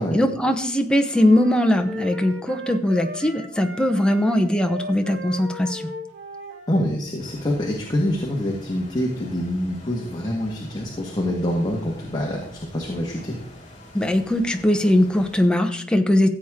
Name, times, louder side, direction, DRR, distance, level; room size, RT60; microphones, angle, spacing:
voice 1, 0.1-5.8 13.9-16.3, left 1 dB, 5° left, 5 dB, 0.9 m, -20 dB
sound 1, 1.0-6.8, left 1 dB, 75° right, 1.7 m, -37 dB
voice 2, 6.7-13.4, left 1 dB, 20° left, -1 dB, 1.6 m, -25 dB
sound 2, 7.2-15.5, left 1 dB, 40° left, 4.1 m, -44 dB
15.0 x 8.1 x 3.7 m, 0.65 s
head